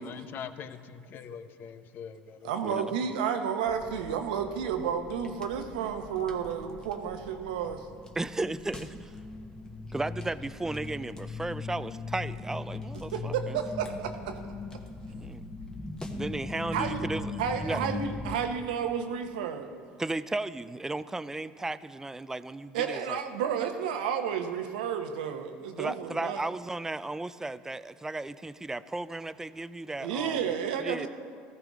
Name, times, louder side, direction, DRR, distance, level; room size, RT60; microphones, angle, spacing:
voice 1, 0.0-2.4, left 8 dB, 50° left, 11 dB, 0.7 m, -43 dB
voice 2, 2.5-7.8 13.1-14.4 16.7-17.1 17.4-19.7 22.7-26.4 30.0-31.1, right 7 dB, 85° right, 6 dB, 1.0 m, -31 dB
sound 1, 3.7-18.5, left 3 dB, 15° left, 1.3 m, -40 dB
voice 3, 8.2-9.1 9.9-13.6 15.2-15.4 16.1-17.8 20.0-23.2 25.8-31.1, right 2 dB, 10° right, 14 dB, 0.4 m, -35 dB
15.0 x 14.0 x 3.6 m, 2.1 s
hypercardioid pair, 80°, 4 cm